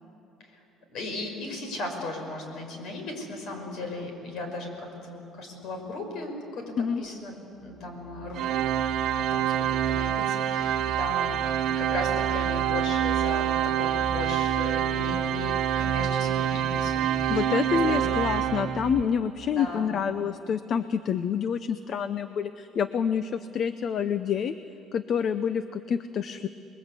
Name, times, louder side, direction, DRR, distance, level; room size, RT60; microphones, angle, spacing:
voice 1, 0.9-7.3 7.6-8.4 9.1-11.4 11.8-17.5 17.9-18.1 19.5-19.9, left 2 dB, 65° left, 4 dB, 5.8 m, -37 dB
sound 1, 7.0-7.1 7.7-19.0, right 4 dB, 10° right, 2.2 m, -38 dB
Organ, 8.3-19.1, right 10 dB, 65° right, 1.2 m, -26 dB
voice 2, 17.3-24.5 24.9-26.5, left 7 dB, 45° left, 12 dB, 0.7 m, -27 dB
29.0 x 21.5 x 8.3 m, 2.9 s
cardioid pair, 135°, 0 cm